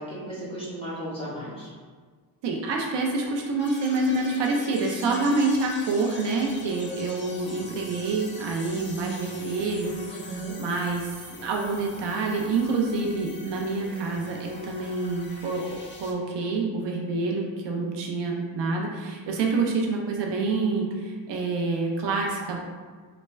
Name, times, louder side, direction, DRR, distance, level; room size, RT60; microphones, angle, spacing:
voice 1, 0.0-1.7 10.1-10.6, right 1 dB, 15° left, -9 dB, 1.2 m, -35 dB
voice 2, 2.4-22.6, right 3 dB, 75° right, 0 dB, 0.6 m, -27 dB
sound 1, 3.6-16.1, left 2 dB, 30° left, 0.4 m, -43 dB
3.3 x 2.1 x 3.2 m, 1.5 s
cardioid pair, 120°, 43 cm